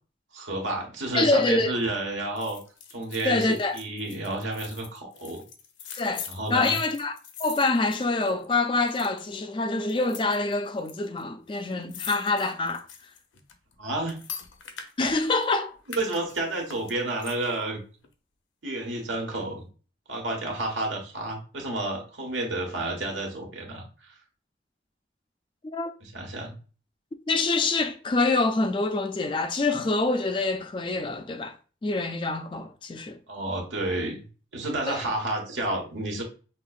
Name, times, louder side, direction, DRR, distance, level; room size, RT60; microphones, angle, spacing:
voice 1, 0.3-2.6 2.9-5.4 6.3-6.8 13.8-14.2 15.9-17.8 18.6-19.7 20.1-23.8 26.0-26.5 33.3-34.3 34.5-36.2, right 2 dB, 80° right, 1.3 m, -30 dB
voice 2, 1.1-1.7 3.2-3.8 6.0-7.1 7.4-12.9 15.0-15.8 25.7-25.9 27.3-31.6 31.8-33.2 34.9-35.0, left 3 dB, 25° left, 0.3 m, -26 dB
sound 1, 2.4-8.5 8.8-9.4 9.9-10.9 11.2-11.3 11.5-15.5 15.9-17.6 18.0-18.1, left 7 dB, 85° left, 0.7 m, -43 dB
5.5 x 2.8 x 2.4 m
head